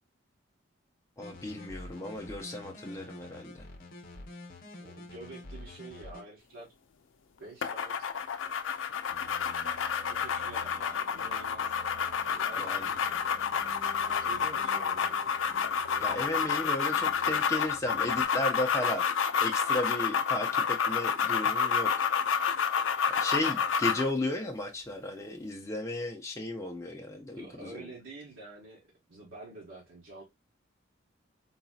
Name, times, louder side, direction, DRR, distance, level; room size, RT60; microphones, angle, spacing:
sound 1, 1.2-6.2, left 2 dB, 45° left, 0.8 m, -47 dB
voice 1, 1.2-3.7 12.6-12.9 16.0-19.0 19.4-22.1 23.2-27.9, left 1 dB, 15° left, 0.5 m, -35 dB
voice 2, 4.8-6.7 7.4-8.1 10.1-11.7 12.3-13.2 14.0-15.3 19.9-20.0 20.4-20.5 23.4-23.6 27.3-28.8 29.1-30.2, right 2 dB, 80° right, 1.3 m, -48 dB
sound 2, 7.6-24.1, left 6 dB, 80° left, 0.4 m, -29 dB
sound 3, 9.0-18.3, right 2 dB, 30° right, 1.6 m, -52 dB
3.9 x 2.7 x 2.3 m
head